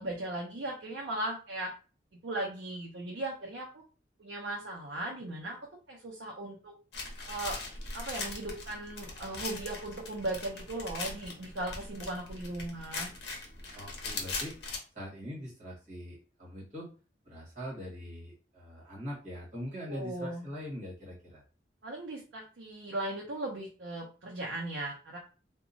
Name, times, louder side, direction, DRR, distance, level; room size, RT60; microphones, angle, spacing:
voice 1, 0.0-1.7 2.2-3.8 4.2-5.6 5.9-6.7 7.3-7.6 7.9-13.1 19.8-20.4 21.8-25.2, right 1 dB, 85° right, -1 dB, 0.6 m, -37 dB
sound 1, 6.9-14.8, left 3 dB, 70° left, 0.7 m, -40 dB
voice 2, 13.7-14.5 14.9-16.9 17.2-21.4, equal, 40° right, -5 dB, 1.5 m, -42 dB
2.8 x 2.2 x 2.6 m, 0.35 s
head